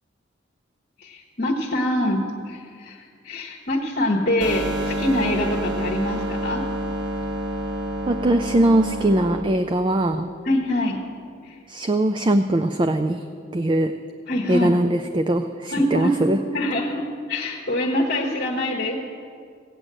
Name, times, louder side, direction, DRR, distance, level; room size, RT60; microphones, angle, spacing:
voice 1, 1.0-6.6 10.4-11.0 11.4-11.6 14.3-14.7 15.7-16.1 16.5-19.0, left 1 dB, 55° left, -2 dB, 1.2 m, -24 dB
sound 1, 4.4-9.4, right 1 dB, 65° right, 1.5 m, -28 dB
voice 2, 8.1-10.3 11.7-13.2 13.5-13.9 14.5-16.4, right 1 dB, 25° right, 7 dB, 0.4 m, -21 dB
16.5 x 8.1 x 7.6 m, 2.3 s
head